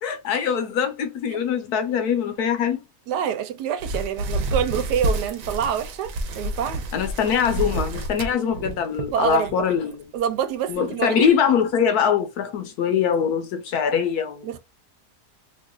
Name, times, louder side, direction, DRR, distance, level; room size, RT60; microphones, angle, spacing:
voice 1, 0.0-2.8 6.9-10.0 10.7-14.6, left 7 dB, 75° left, 1.1 m, -23 dB
voice 2, 3.1-6.8 9.1-9.6 10.1-11.2 14.4-14.6, right 9 dB, 85° right, 1.2 m, -26 dB
sound 1, 3.8-9.5 9.9-10.2 10.7-10.8 11.3-11.4, right 1 dB, 60° right, 1.1 m, -29 dB
3.0 x 2.4 x 3.6 m
omnidirectional pair, 1.8 m